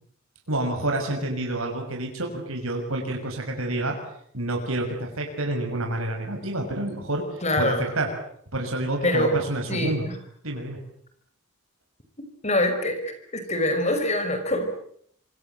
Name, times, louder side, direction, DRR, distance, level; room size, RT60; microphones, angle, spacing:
voice 1, 0.5-4.0 4.3-8.1 8.5-10.1 10.4-10.8, right 1 dB, 85° right, 2 dB, 6.2 m, -28 dB
voice 2, 7.4-7.9 9.0-9.3 9.7-10.1 12.4-14.8, left 1 dB, 30° left, 7 dB, 5.7 m, -25 dB
27.0 x 24.5 x 8.0 m, 0.67 s
head